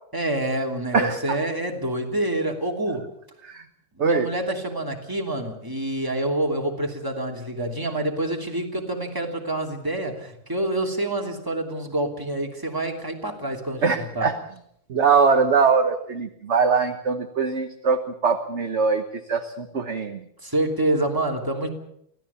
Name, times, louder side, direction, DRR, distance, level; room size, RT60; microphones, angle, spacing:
voice 1, 0.1-3.1 3.9-14.3 20.4-21.7, right 1 dB, 10° right, 1 dB, 2.9 m, -27 dB
voice 2, 0.9-1.4 3.4-3.6 4.0-4.3 13.8-14.4 14.9-20.2, right 5 dB, 40° right, 6 dB, 1.3 m, -22 dB
25.0 x 16.5 x 7.1 m, 0.74 s
omnidirectional pair, 2.3 m